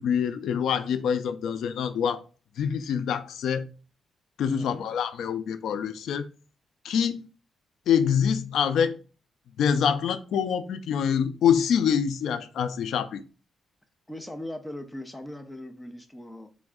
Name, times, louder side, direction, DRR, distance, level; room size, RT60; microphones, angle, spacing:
voice 1, 0.0-2.2 2.6-3.7 4.4-6.3 6.8-7.3 7.9-9.0 9.6-13.2, left 7 dB, 85° left, 0.3 m, -25 dB
voice 2, 4.5-4.9 14.1-16.5, left 1 dB, 10° left, 0.4 m, -39 dB
3.4 x 3.1 x 3.6 m
wide cardioid pair, 170°, 0 cm